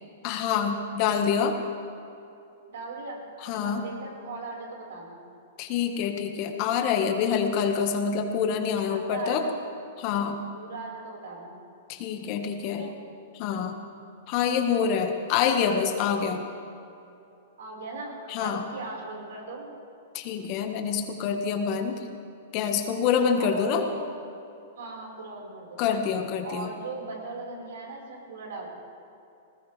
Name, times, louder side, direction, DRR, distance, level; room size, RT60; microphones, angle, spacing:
voice 1, 0.2-1.6 3.4-3.8 5.6-9.5 10.0-10.4 11.9-12.9 13.3-13.8 14.3-16.5 18.3-18.6 20.1-22.0 22.5-23.8 25.8-26.7, left 7 dB, 45° left, 5 dB, 1.6 m, -26 dB
voice 2, 2.7-3.2 3.6-5.2 8.9-9.6 10.5-11.6 12.6-12.9 17.6-19.7 23.4-24.1 24.8-25.8 26.4-28.7, right 3 dB, 75° right, -1 dB, 4.9 m, -39 dB
19.5 x 19.5 x 3.5 m, 2.8 s
hypercardioid pair, 120°, 0 cm